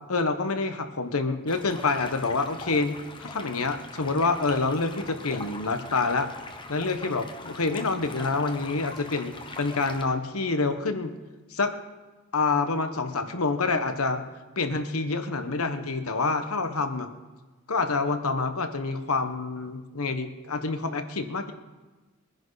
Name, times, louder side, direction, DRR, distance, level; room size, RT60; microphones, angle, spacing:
voice 1, 0.1-6.3 6.7-11.1 11.5-11.7 12.3-14.2 14.6-17.1 17.7-21.5, left 3 dB, 85° left, 8 dB, 1.3 m, -27 dB
Stream, 1.5-10.0, left 3 dB, 20° left, 1.0 m, -42 dB
22.5 x 10.5 x 4.1 m, 1.2 s
head